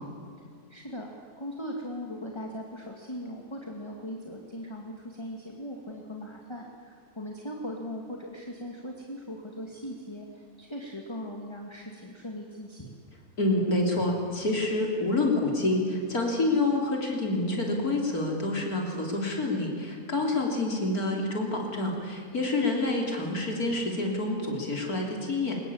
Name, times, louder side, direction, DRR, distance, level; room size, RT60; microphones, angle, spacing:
voice 1, 0.7-1.1 1.4-13.0 22.6-22.8, equal, 15° left, 0 dB, 2.3 m, -39 dB
voice 2, 13.4-25.6, left 2 dB, 70° left, 0 dB, 3.9 m, -27 dB
23.5 x 21.5 x 8.7 m, 2.2 s
omnidirectional pair, 1.6 m